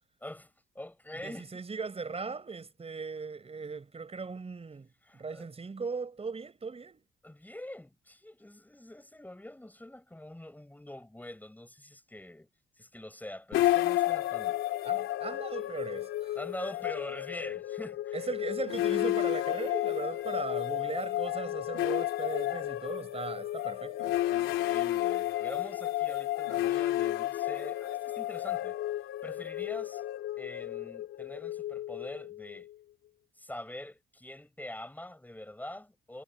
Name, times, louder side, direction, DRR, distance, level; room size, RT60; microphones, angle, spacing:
voice 1, 0.2-1.5 5.0-5.5 7.2-12.5 12.8-14.7 16.3-18.3 24.3-28.8 29.2-30.0 30.4-32.7 33.4-36.2, left 1 dB, 10° left, 5.9 m, -44 dB
voice 2, 1.2-7.0 14.8-16.4 18.1-24.2, right 4 dB, 30° right, 5.3 m, -38 dB
sound 1, 13.5-32.6, left 14 dB, 90° left, 3.1 m, -32 dB
cardioid pair, 90°, 20 cm